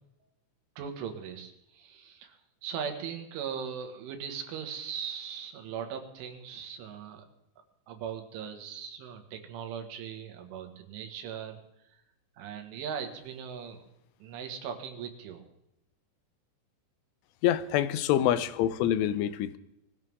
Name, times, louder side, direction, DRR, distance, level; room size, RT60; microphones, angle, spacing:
voice 1, 0.8-7.3 7.9-11.6 11.9-12.0 12.4-13.8 14.2-15.5, right 7 dB, 80° right, 4 dB, 4.2 m, -39 dB
voice 2, 17.4-19.6, left 11 dB, 90° left, 14 dB, 3.3 m, -26 dB
21.0 x 15.0 x 3.7 m, 0.82 s
omnidirectional pair, 5.5 m